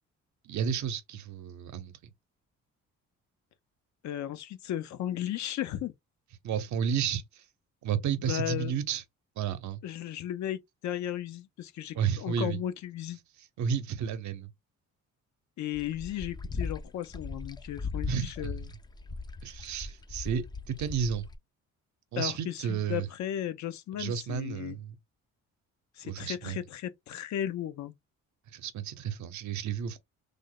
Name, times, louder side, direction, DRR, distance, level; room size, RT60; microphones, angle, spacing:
voice 1, 0.4-1.9 6.4-7.4 7.8-9.0 9.4-9.8 11.9-12.6 13.6-14.5 18.1-18.5 19.4-21.2 22.1-23.1 24.0-25.0 26.0-26.6 28.5-30.0, right 7 dB, 70° right, 0.8 m, -32 dB
voice 2, 4.0-5.9 8.2-8.8 9.8-13.2 15.6-18.7 22.2-24.8 26.0-27.9, left 11 dB, 70° left, 0.6 m, -35 dB
sound 1, 15.7-21.4, left 4 dB, 15° left, 0.4 m, -38 dB
3.4 x 2.0 x 3.6 m
cardioid pair, 90°, 30 cm